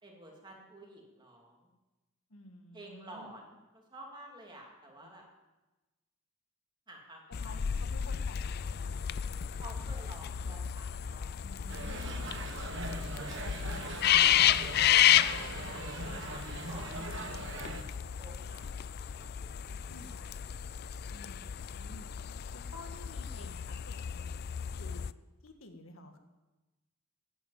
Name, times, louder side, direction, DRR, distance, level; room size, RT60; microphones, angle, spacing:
voice 1, 0.0-1.7 2.7-5.3 6.9-7.7 9.6-11.3 12.0-12.8 13.1-14.0 14.4-15.8 16.2-17.2 17.5-20.3, right 1 dB, 20° right, 0 dB, 2.7 m, -52 dB
voice 2, 2.3-3.3 5.0-5.2 7.4-9.1 11.4-12.4 14.1-15.2 19.9-20.1 21.1-22.1 22.5-24.4 24.8-25.1 25.4-26.2, left 2 dB, 70° left, 5 dB, 1.7 m, -52 dB
sound 1, 7.3-25.1, left 10 dB, 50° left, 0.4 m, -32 dB
sound 2, 11.7-17.8, right 2 dB, 60° right, 1.4 m, -41 dB
11.0 x 10.0 x 9.0 m, 1.1 s
head